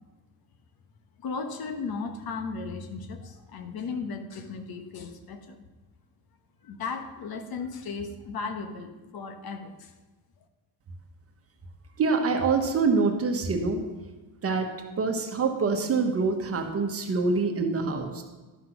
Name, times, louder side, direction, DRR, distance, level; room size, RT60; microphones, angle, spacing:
voice 1, 1.2-5.6 6.6-9.9, left 4 dB, 60° left, 8 dB, 1.1 m, -36 dB
voice 2, 12.0-13.8 14.4-14.7 15.0-18.2, right 4 dB, 35° right, 4 dB, 1.1 m, -25 dB
11.5 x 5.9 x 5.9 m, 1.2 s
cardioid pair, 165°, 41 cm